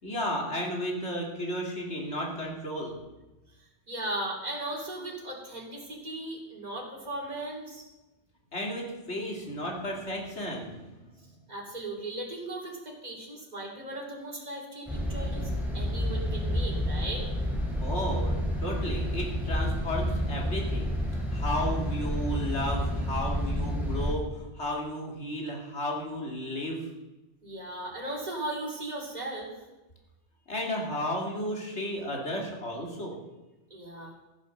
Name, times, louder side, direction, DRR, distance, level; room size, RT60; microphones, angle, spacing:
voice 1, 0.0-3.0 8.5-11.0 17.8-26.9 30.5-33.2, equal, 70° left, -1 dB, 3.0 m, -33 dB
voice 2, 3.9-7.9 11.5-17.2 27.4-29.6 33.7-34.1, right 1 dB, 35° right, -2 dB, 3.1 m, -37 dB
sound 1, 14.9-24.1, equal, ahead, 2.8 m, -30 dB
14.5 x 7.6 x 6.6 m, 1.0 s
omnidirectional pair, 1.2 m